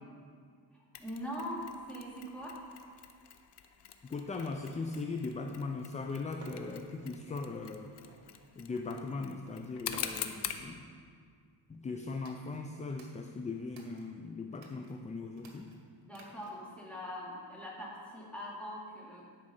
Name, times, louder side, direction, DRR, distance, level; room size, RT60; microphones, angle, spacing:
Mechanisms, 0.9-10.7, left 9 dB, 65° left, 0.8 m, -45 dB
voice 1, 1.0-2.6 16.1-19.2, equal, 5° left, -6 dB, 2.3 m, -42 dB
voice 2, 4.0-7.9 8.6-10.8 11.7-15.7, left 3 dB, 20° left, 4 dB, 0.3 m, -39 dB
sound 1, 4.3-4.7 6.0-6.1 6.4-7.2 7.9-8.3 9.9-10.4, right 2 dB, 35° right, 1.3 m, -52 dB
sound 2, 12.1-14.1 14.5-14.9 15.3-16.7, right 4 dB, 75° right, 1.6 m, -60 dB
11.0 x 5.1 x 6.6 m, 2.1 s
cardioid pair, 125°, 45 cm